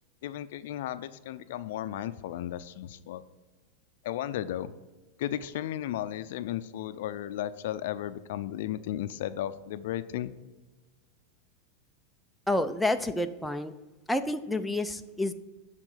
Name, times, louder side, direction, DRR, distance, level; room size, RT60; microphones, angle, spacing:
voice 1, 0.2-3.2 4.0-4.7 5.2-10.3, left 12 dB, 70° left, 13 dB, 0.5 m, -34 dB
voice 2, 12.5-13.7 14.1-15.3, left 1 dB, 5° left, 7 dB, 0.4 m, -29 dB
9.9 x 3.8 x 6.5 m, 1.2 s
supercardioid pair, 130°, 0 cm